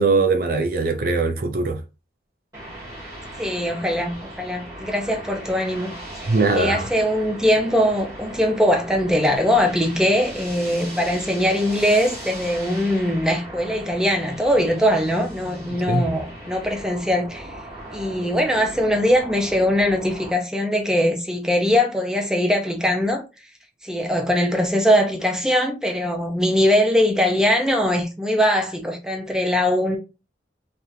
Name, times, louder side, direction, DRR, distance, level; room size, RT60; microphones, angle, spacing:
voice 1, 0.0-1.8 6.3-6.9 15.6-16.2, right 3 dB, 50° right, 0.5 m, -21 dB
sound 1, 2.5-20.3, right 1 dB, 20° right, 2.2 m, -38 dB
voice 2, 3.4-17.6 17.9-23.2 23.8-30.0, equal, 5° right, 0.7 m, -21 dB
4.1 x 3.3 x 2.7 m
head